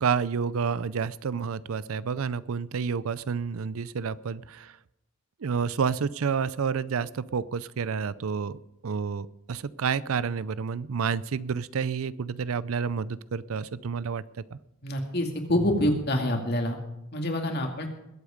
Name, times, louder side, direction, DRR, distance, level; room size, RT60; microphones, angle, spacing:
voice 1, 0.0-4.8 5.4-14.6, right 6 dB, 80° right, 18 dB, 0.5 m, -29 dB
voice 2, 14.8-16.8 17.1-17.9, left 1 dB, 50° left, 3 dB, 2.3 m, -26 dB
21.0 x 8.4 x 5.1 m, 0.90 s
head